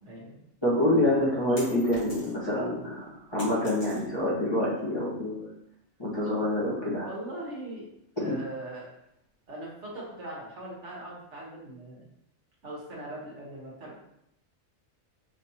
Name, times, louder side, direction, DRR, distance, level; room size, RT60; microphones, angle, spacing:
voice 1, 0.0-0.4 6.2-6.3 6.9-7.9 8.2-8.9 9.5-12.0 12.6-14.0, right 1 dB, 60° right, -4 dB, 1.4 m, -40 dB
voice 2, 0.6-5.5 6.0-7.1 8.2-8.3, left 1 dB, 20° left, -8 dB, 1.3 m, -27 dB
sound 1, 0.8-2.6 2.9-4.4, left 1 dB, 40° left, 1.7 m, -45 dB
5.6 x 3.1 x 2.8 m, 0.78 s
omnidirectional pair, 1.4 m